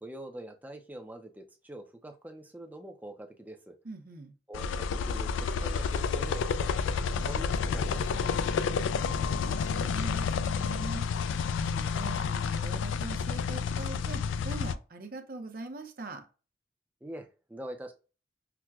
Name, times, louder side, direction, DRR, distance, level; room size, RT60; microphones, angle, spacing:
voice 1, 0.0-3.8 4.5-8.3 17.0-17.9, right 1 dB, 10° right, 0.5 m, -45 dB
voice 2, 3.8-4.3 8.5-11.1 11.6-16.3, right 2 dB, 50° right, 0.7 m, -42 dB
sound 1, 4.5-14.8, left 6 dB, 85° left, 0.3 m, -30 dB
5.9 x 2.2 x 2.3 m
head